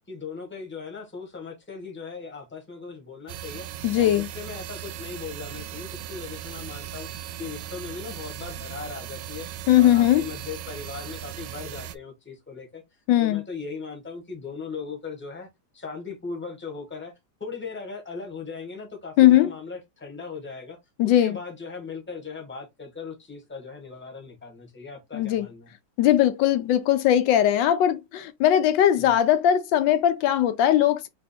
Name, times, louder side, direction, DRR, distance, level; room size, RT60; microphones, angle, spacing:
voice 1, 0.1-3.7 3.9-7.1 7.4-9.5 9.8-12.8 13.2-17.1 17.4-25.7 29.0-29.1, left 5 dB, 5° left, 1.1 m, -38 dB
sound 1, 3.3-11.9, right 11 dB, 75° right, 1.1 m, -38 dB
voice 2, 3.8-4.3 9.7-10.3 13.1-13.4 19.2-19.5 21.0-21.4 25.1-25.4 26.0-31.1, left 11 dB, 80° left, 1.3 m, -19 dB
3.3 x 2.9 x 4.2 m
omnidirectional pair, 2.0 m